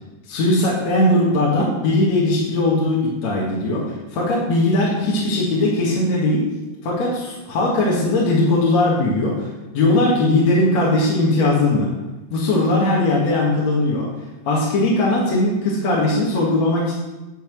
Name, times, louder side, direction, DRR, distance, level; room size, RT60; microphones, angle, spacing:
voice 1, 0.3-6.4 6.8-9.5 9.7-11.9 12.3-14.1 14.5-16.9, left 2 dB, 55° left, -4 dB, 2.6 m, -19 dB
10.0 x 5.7 x 6.1 m, 1.1 s
omnidirectional pair, 4.1 m